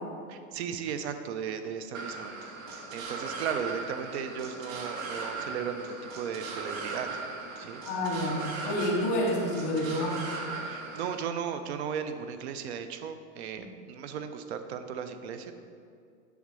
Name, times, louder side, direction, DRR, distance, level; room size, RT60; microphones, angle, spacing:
voice 1, 0.3-2.4 2.7-7.1 7.6-7.8 10.7-15.5, right 7 dB, 55° right, 9 dB, 0.5 m, -36 dB
sound 1, 1.9-11.1, right 3 dB, 75° right, 1.6 m, -38 dB
voice 2, 7.8-10.2, left 1 dB, 15° left, -5 dB, 0.3 m, -29 dB
7.0 x 3.7 x 6.2 m, 2.4 s
supercardioid pair, 175°, 41 cm